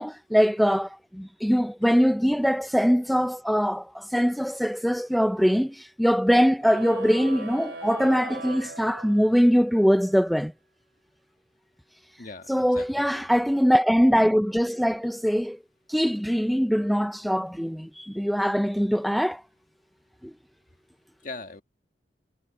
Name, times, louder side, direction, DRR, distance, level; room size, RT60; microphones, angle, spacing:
voice 1, 0.0-10.5 12.5-15.6 15.9-19.4, equal, ahead, 0.3 m, -22 dB
sound 1, 6.6-9.6, right 3 dB, 80° right, 2.7 m, -40 dB
voice 2, 12.2-13.3 21.2-21.6, left 3 dB, 50° left, 1.6 m, -41 dB
head